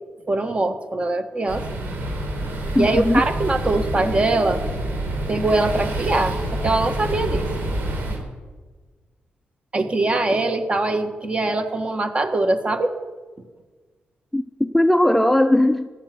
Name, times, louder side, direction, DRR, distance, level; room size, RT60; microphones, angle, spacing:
voice 1, 0.3-1.6 2.8-4.6 5.3-7.5 9.7-12.9, right 2 dB, 30° right, 7 dB, 1.5 m, -22 dB
sound 1, 1.5-8.2, right 1 dB, 75° right, 3.7 m, -27 dB
voice 2, 2.7-3.2 14.3-15.9, left 1 dB, 5° left, 8 dB, 0.5 m, -18 dB
15.5 x 12.0 x 6.0 m, 1.4 s
cardioid pair, 90°, 4 cm